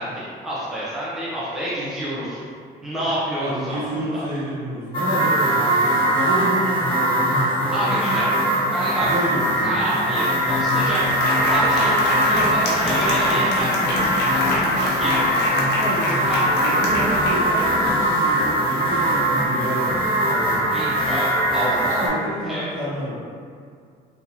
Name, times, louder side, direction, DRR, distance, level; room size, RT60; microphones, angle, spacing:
voice 1, 0.0-2.4 2.8-4.2 7.7-8.3 8.7-9.1 9.6-11.0 11.5-13.8 15.0-15.3 16.3-16.4 20.7-21.9 22.5-22.6, right 1 dB, 5° right, -10 dB, 0.7 m, -28 dB
voice 2, 3.4-8.2 9.0-10.0 12.3-14.1 15.7-19.9 20.3-20.7 21.8-23.2, equal, 55° right, -11 dB, 1.4 m, -30 dB
sound 1, 4.9-22.1, right 1 dB, 30° left, 1.0 m, -21 dB
Applause, 10.2-10.3 10.6-18.1, left 2 dB, 75° left, 0.7 m, -27 dB
3.5 x 2.8 x 2.8 m, 2.2 s
cardioid pair, 110°, 17 cm